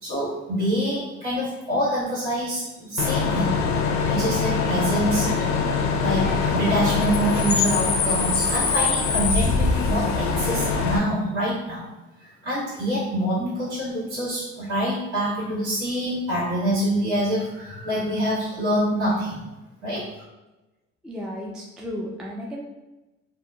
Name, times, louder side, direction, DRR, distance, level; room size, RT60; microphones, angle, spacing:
voice 1, 0.0-3.6 4.1-5.3 6.0-11.9 12.2-19.4 19.8-20.0, equal, 75° right, -11 dB, 1.3 m, -26 dB
Bus / Idling / Screech, 3.0-11.0, left 5 dB, 70° left, 0.5 m, -23 dB
voice 2, 21.0-22.7, equal, ahead, -2 dB, 0.3 m, -34 dB
2.8 x 2.0 x 2.2 m, 1.1 s
supercardioid pair, 80°, 30 cm